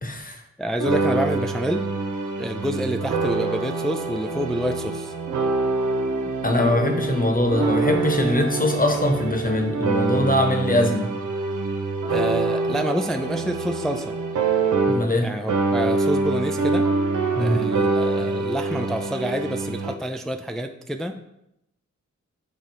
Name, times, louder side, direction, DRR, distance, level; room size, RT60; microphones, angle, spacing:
voice 1, 0.0-0.4 6.4-11.1 14.9-15.3 17.4-17.6, left 1 dB, 30° left, 5 dB, 1.1 m, -22 dB
voice 2, 0.6-1.8 2.4-5.1 12.1-14.1 15.2-16.9 17.4-21.2, equal, ahead, 6 dB, 0.4 m, -28 dB
sound 1, 0.8-15.2 15.5-19.9, right 3 dB, 85° right, 0.7 m, -25 dB
6.4 x 3.7 x 4.2 m, 0.82 s
cardioid pair, 55°, 30 cm